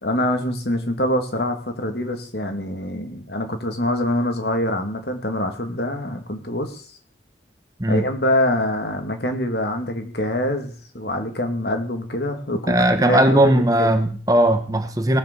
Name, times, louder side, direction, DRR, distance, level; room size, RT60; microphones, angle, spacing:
voice 1, 0.0-6.8 7.9-13.9, left 1 dB, 60° left, 5 dB, 2.5 m, -25 dB
voice 2, 12.7-15.2, right 1 dB, 20° right, 7 dB, 1.2 m, -18 dB
18.5 x 7.2 x 7.0 m, 0.43 s
head